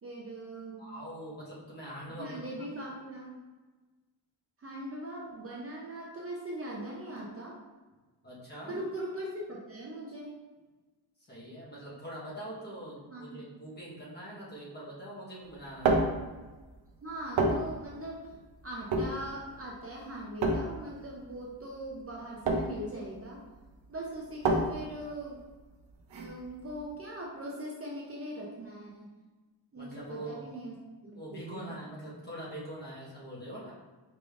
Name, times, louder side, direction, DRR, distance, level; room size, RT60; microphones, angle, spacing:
voice 1, 0.0-0.9 2.2-3.4 4.6-7.6 8.7-10.3 13.1-13.4 17.0-18.3 18.6-23.4 23.9-25.4 26.1-29.1 29.7-30.7 31.0-31.7, right 1 dB, 35° right, -3 dB, 0.5 m, -40 dB
voice 2, 0.8-2.5 8.2-8.8 11.3-16.1 29.8-30.5 31.1-33.8, right 1 dB, 25° left, -6 dB, 1.1 m, -43 dB
sound 1, 15.4-27.0, right 2 dB, 85° right, 0.7 m, -32 dB
4.9 x 3.4 x 2.4 m, 1.3 s
wide cardioid pair, 165°, 44 cm